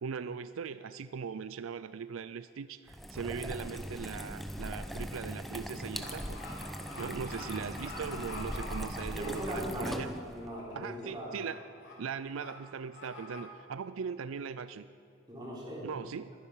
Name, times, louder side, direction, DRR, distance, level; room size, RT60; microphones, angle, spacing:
voice 1, 0.0-6.4 7.0-10.1 10.7-11.6 12.0-14.9 15.8-16.3, right 6 dB, 90° right, 14 dB, 0.4 m, -40 dB
sound 1, 2.9-10.5, equal, ahead, 0.7 m, -40 dB
sound 2, 3.9-4.2 4.5-10.0 10.4-10.8 11.0-11.5 11.8-11.9 12.3-12.5 12.9-13.4, left 2 dB, 65° left, 3.4 m, -46 dB
voice 2, 9.2-11.4 15.3-16.0, right 1 dB, 20° right, -5 dB, 3.9 m, -39 dB
21.5 x 10.5 x 5.6 m, 2.5 s
head